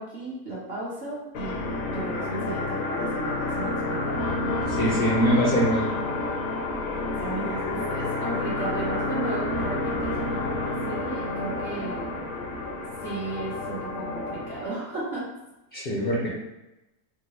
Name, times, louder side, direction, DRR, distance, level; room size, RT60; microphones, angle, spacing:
voice 1, 0.0-4.2 6.9-12.2 13.0-15.3, right 3 dB, 50° right, -7 dB, 0.8 m, -35 dB
sound 1, 1.3-14.7, left 2 dB, 75° left, 1.1 m, -29 dB
voice 2, 4.7-5.9 15.7-16.3, equal, 60° left, -5 dB, 0.5 m, -23 dB
3.7 x 2.1 x 2.8 m, 0.96 s
omnidirectional pair, 1.8 m